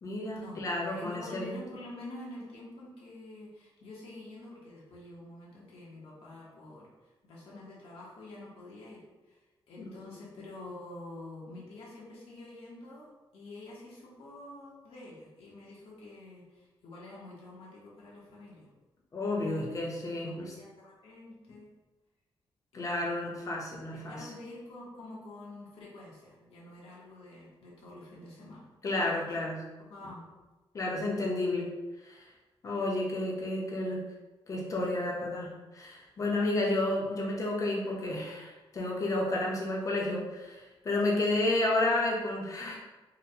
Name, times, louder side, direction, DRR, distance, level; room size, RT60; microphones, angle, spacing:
voice 1, 0.0-1.5 9.8-9.9 19.1-20.5 22.7-24.3 28.8-29.6 30.7-31.7 32.0-32.3 32.6-34.0 34.5-42.8, left 2 dB, 35° left, -2 dB, 0.6 m, -31 dB
voice 2, 0.8-6.9 7.2-9.4 9.7-13.1 13.3-18.7 19.4-19.7 20.2-21.7 22.7-23.3 23.9-28.6 29.2-29.4 29.8-30.2 35.0-35.3, left 2 dB, 80° left, -6 dB, 0.9 m, -47 dB
3.9 x 2.1 x 2.7 m, 1.1 s
wide cardioid pair, 175°, 9 cm